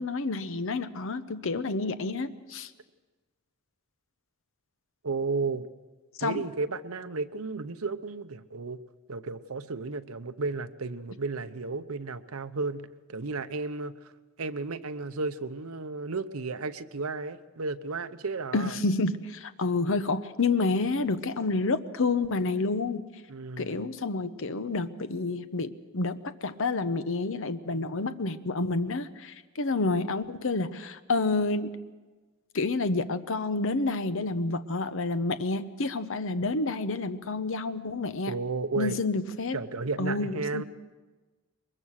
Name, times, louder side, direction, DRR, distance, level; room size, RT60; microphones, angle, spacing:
voice 1, 0.0-2.7 6.2-6.4 18.5-23.0 23.6-31.7 32.5-38.4 38.8-39.6 40.0-40.6, left 3 dB, 65° left, 12 dB, 0.9 m, -29 dB
voice 2, 5.0-5.7 6.2-8.8 9.1-14.1 14.4-18.8 23.3-23.9 38.3-39.0 39.5-40.6, right 3 dB, 80° right, 11 dB, 0.9 m, -33 dB
22.5 x 21.5 x 6.5 m, 1.3 s
head